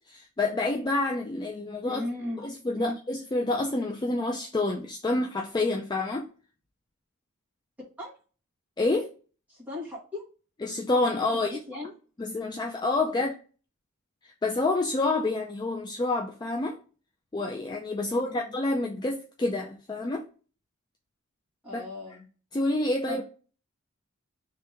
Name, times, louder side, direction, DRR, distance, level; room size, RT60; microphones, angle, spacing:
voice 1, 0.1-2.0 2.4-6.3 8.8-9.1 10.6-11.6 12.2-13.3 14.2-16.8 17.3-20.2 21.7-21.8 22.5-23.2, left 2 dB, 20° left, 1 dB, 0.4 m, -28 dB
voice 2, 1.8-2.4 2.7-3.0 8.0-8.1 9.5-10.2 11.3-11.9 13.1-13.2 18.0-18.5 21.6-22.2 23.1-23.2, left 1 dB, 5° right, -7 dB, 1.8 m, -36 dB
3.3 x 3.0 x 3.3 m, 0.37 s
head